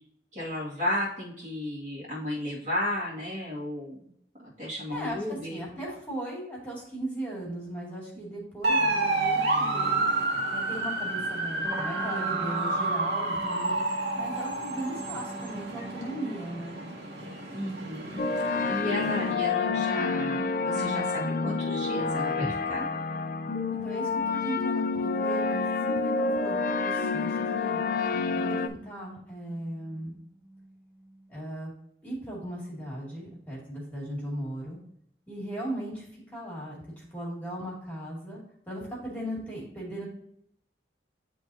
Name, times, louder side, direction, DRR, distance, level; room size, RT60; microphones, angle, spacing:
voice 1, 0.3-4.1 4.4-5.9 17.5-18.2 18.7-22.9, left 1 dB, 40° right, -6 dB, 2.0 m, -33 dB
voice 2, 4.9-10.1 10.5-13.8 14.1-16.8 23.7-25.7 26.0-27.8 28.3-30.1 31.3-31.7 32.0-34.8 35.3-36.8 37.1-40.1, right 1 dB, 10° left, -5 dB, 2.2 m, -37 dB
sound 1, 8.6-19.3, right 2 dB, 75° right, 1.7 m, -30 dB
sound 2, 11.6-31.5, right 2 dB, 25° right, 0.6 m, -44 dB
sound 3, 18.2-28.7, left 4 dB, 45° left, 0.4 m, -28 dB
10.0 x 3.6 x 2.7 m, 0.69 s
head